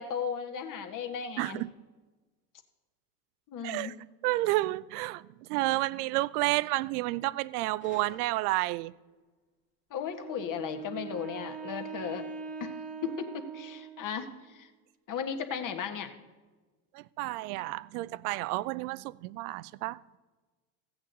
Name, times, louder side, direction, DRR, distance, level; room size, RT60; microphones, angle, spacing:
voice 1, 0.0-1.6 3.5-3.9 9.9-12.3 12.6-12.7 13.0-14.7 15.1-16.1, left 7 dB, 40° left, 1.4 m, -36 dB
voice 2, 1.4-1.7 3.6-3.9 4.2-8.9 16.9-20.0, right 19 dB, 65° right, 0.5 m, -30 dB
Gunshot gunfire, 7.8-9.0, left 4 dB, 25° left, 1.7 m, -54 dB
Wind instrument woodwind instrument, 10.1-14.3, right 6 dB, 15° right, 1.2 m, -42 dB
15.5 x 8.7 x 3.9 m
hypercardioid pair, 80°, 49 cm